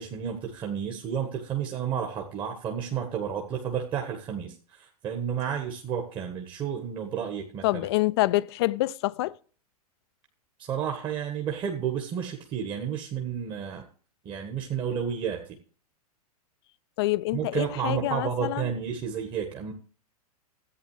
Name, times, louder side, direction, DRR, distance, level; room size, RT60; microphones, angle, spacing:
voice 1, 0.0-7.6 10.6-13.8 14.2-15.4 17.3-19.7, right 8 dB, 25° right, 1.5 m, -31 dB
voice 2, 7.6-9.4 17.0-18.7, left 18 dB, 40° left, 0.5 m, -26 dB
14.0 x 8.9 x 3.2 m
figure-of-eight pair, 100°, 20 cm